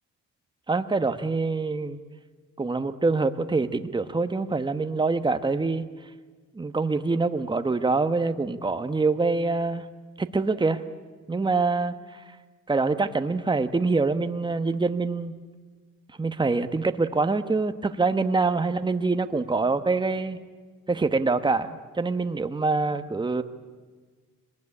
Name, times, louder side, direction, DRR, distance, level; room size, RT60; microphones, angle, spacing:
voice 1, 0.7-2.0 2.6-5.9 6.5-9.9 10.2-10.8 11.3-12.2 12.7-15.3 16.2-20.4 20.9-23.4, right 3 dB, 15° right, 10 dB, 1.1 m, -25 dB
22.5 x 19.5 x 9.9 m, 1.4 s
cardioid pair, 90°, 30 cm